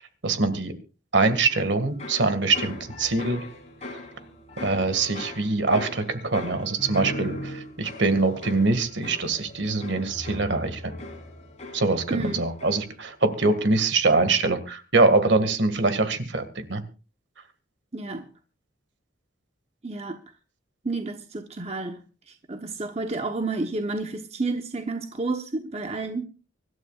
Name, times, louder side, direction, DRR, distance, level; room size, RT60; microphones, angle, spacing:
voice 1, 0.2-0.7 1.1-3.4 4.6-10.9 11.7-16.8, right 3 dB, 65° right, 1.9 m, -23 dB
sound 1, 1.5-13.1 13.4-13.9, left 1 dB, 35° left, 3.6 m, -39 dB
voice 2, 12.1-12.4 17.9-18.3 19.8-20.2 20.8-22.0 22.3-26.2, right 3 dB, 30° right, 1.0 m, -30 dB
25.0 x 12.5 x 2.4 m
head